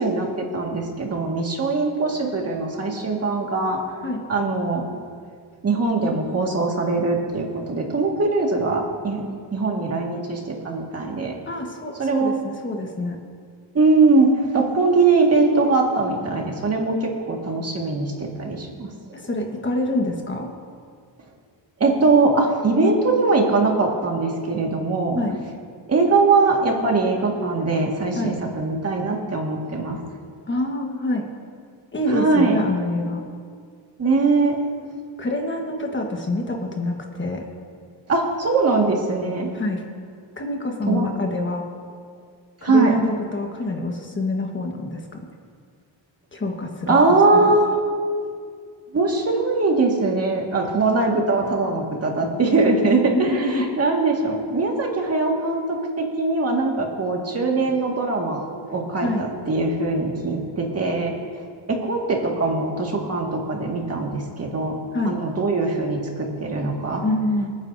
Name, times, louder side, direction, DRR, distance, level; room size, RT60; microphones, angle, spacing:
voice 1, 0.0-3.8 4.3-4.8 5.6-9.3 9.5-11.4 12.0-12.4 13.7-18.9 21.8-25.2 25.9-30.0 32.1-32.6 34.0-34.6 38.1-39.5 40.9-41.1 42.6-42.9 46.9-47.8 48.9-58.4 58.7-61.1 61.7-64.7 65.0-67.0, right 3 dB, 35° right, 0 dB, 1.9 m, -21 dB
voice 2, 11.5-13.2 19.1-20.5 25.2-25.4 28.1-28.4 30.5-31.3 31.9-33.2 35.2-37.4 39.5-39.8 40.4-41.6 42.6-45.0 46.3-47.0 47.3-47.5 53.1-53.6 59.0-59.3 64.9-65.2 67.0-67.5, left 2 dB, 25° left, 1 dB, 1.4 m, -26 dB
27.0 x 9.6 x 2.7 m, 2.1 s
cardioid pair, 135°, 45 cm